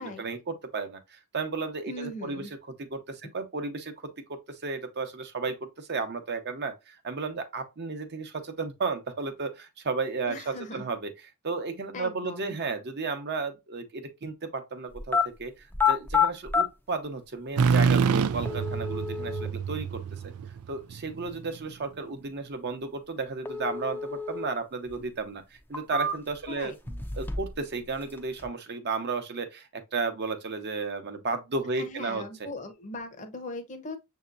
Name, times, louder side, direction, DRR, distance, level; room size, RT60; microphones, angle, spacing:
voice 1, 0.0-2.5 2.8-11.1 11.4-15.5 15.9-20.3 20.7-32.5, right 4 dB, 50° right, 0.8 m, -33 dB
voice 2, 1.9-2.5 10.3-10.8 11.9-12.6 26.5-26.7 31.8-34.0, left 2 dB, 35° left, 0.8 m, -39 dB
sound 1, 15.0-15.3 15.7-16.7 17.6-17.7 18.4-19.5 23.4-24.5 24.9-25.0 25.6-26.4 26.9-27.6 27.9-28.5, left 5 dB, 10° left, 0.5 m, -28 dB
sound 2, 17.6-21.3, right 6 dB, 85° right, 0.3 m, -26 dB
6.7 x 2.8 x 2.4 m
head